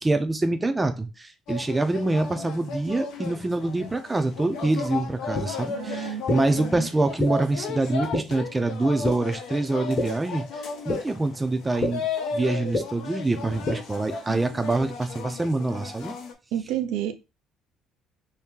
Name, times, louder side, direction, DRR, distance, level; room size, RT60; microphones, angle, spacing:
voice 1, 0.0-12.1 12.3-16.1, right 2 dB, 15° right, 0.5 m, -25 dB
sound 1, 1.5-16.3, left 5 dB, 75° left, 0.7 m, -35 dB
sound 2, 5.3-5.4 6.3-6.4 7.2-7.3 8.1-8.2 9.0-9.1 10.0-10.1 10.9-11.0 11.8-11.9 12.7-12.8 13.7-13.8, left 3 dB, 35° left, 1.1 m, -24 dB
voice 2, 5.8-6.9 14.2-14.4 16.5-17.2, right 10 dB, 90° right, 0.5 m, -31 dB
2.8 x 2.7 x 3.7 m
cardioid pair, 130°, 0 cm